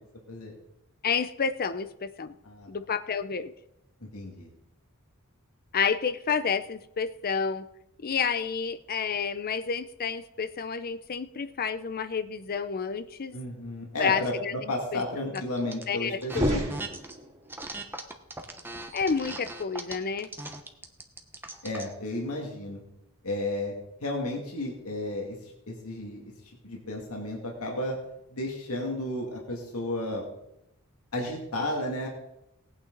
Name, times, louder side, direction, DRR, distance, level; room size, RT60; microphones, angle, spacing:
voice 1, 1.0-2.3 2.7-3.5 5.7-7.7 8.0-13.3 14.0-15.4 15.9-16.6 18.9-20.3, left 6 dB, 45° left, 13 dB, 0.6 m, -30 dB
voice 2, 4.1-4.5 13.3-16.7 21.6-22.8 23.2-23.7 24.0-25.4 25.7-26.2 26.6-28.0 28.3-30.2 31.1-32.1, left 1 dB, 75° left, -1 dB, 2.3 m, -33 dB
sound 1, 15.3-15.8 16.2-17.1 17.5-21.9, right 2 dB, 10° right, 1.0 m, -39 dB
sound 2, 16.2-17.5, equal, 30° right, 3.1 m, -29 dB
18.5 x 8.8 x 3.9 m, 0.84 s
head